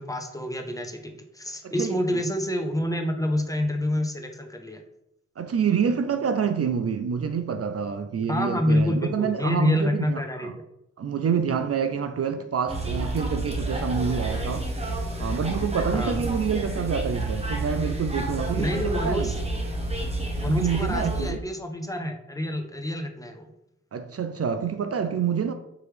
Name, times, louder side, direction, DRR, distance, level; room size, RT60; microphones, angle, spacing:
voice 1, 0.0-4.8 8.3-10.6 15.9-16.3 18.6-19.3 20.4-23.5, left 1 dB, 10° left, 0.6 m, -27 dB
voice 2, 1.6-2.0 5.4-10.5 11.0-14.7 15.2-19.3 20.5-21.4 23.9-25.5, right 6 dB, 55° right, 0.4 m, -27 dB
sound 1, 12.7-21.3, right 2 dB, 20° right, 1.0 m, -29 dB
4.7 x 2.9 x 3.2 m
cardioid pair, 45°, 30 cm